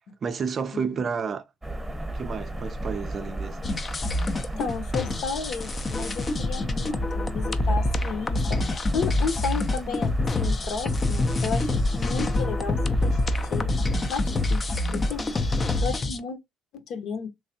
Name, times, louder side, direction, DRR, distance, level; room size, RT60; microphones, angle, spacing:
voice 1, 0.2-1.5 2.1-3.6, right 6 dB, 35° right, 0.5 m, -30 dB
sound 1, 1.6-15.8, right 1 dB, 5° right, 1.0 m, -36 dB
sound 2, 3.6-16.2, left 2 dB, 25° left, 0.5 m, -26 dB
voice 2, 4.6-10.1 10.4-13.2 13.5-13.7 14.1-15.2 15.8-16.4 16.7-17.3, left 5 dB, 60° left, 0.8 m, -33 dB
3.3 x 3.2 x 2.7 m
cardioid pair, 125°, 0 cm